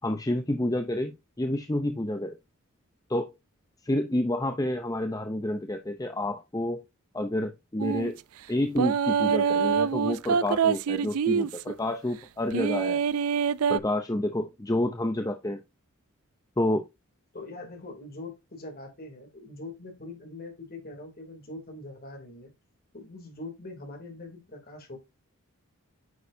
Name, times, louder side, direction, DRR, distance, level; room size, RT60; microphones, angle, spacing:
voice 1, 0.0-2.4 3.1-3.3 3.8-6.8 7.1-8.2 8.5-13.0 13.7-15.6 16.6-16.8, left 1 dB, 15° left, 0.6 m, -29 dB
sound 1, 7.8-8.1 8.8-11.7 12.5-13.8, right 6 dB, 80° right, 0.4 m, -25 dB
voice 2, 17.3-22.5 22.9-25.0, left 2 dB, 40° left, 2.8 m, -42 dB
9.4 x 6.3 x 2.7 m
head